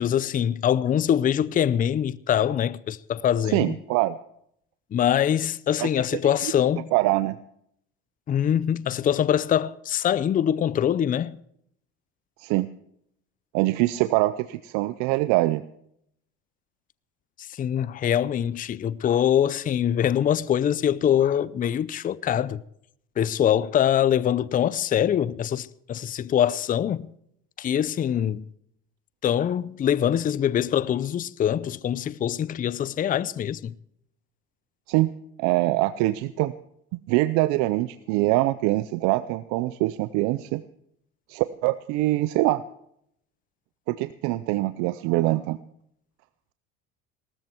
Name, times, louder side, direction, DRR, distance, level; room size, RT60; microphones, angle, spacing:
voice 1, 0.0-3.7 4.9-6.9 8.3-11.4 17.4-22.6 23.2-27.1 27.6-28.4 29.2-33.7, left 10 dB, 30° left, 0.5 m, -24 dB
voice 2, 3.5-4.2 5.8-6.5 6.9-7.4 12.4-12.7 13.5-15.6 34.9-35.1 35.4-36.5 37.1-40.6 41.3-42.6 43.9-45.6, right 18 dB, 75° right, 0.7 m, -24 dB
18.5 x 13.5 x 4.5 m
supercardioid pair, 105°, 29 cm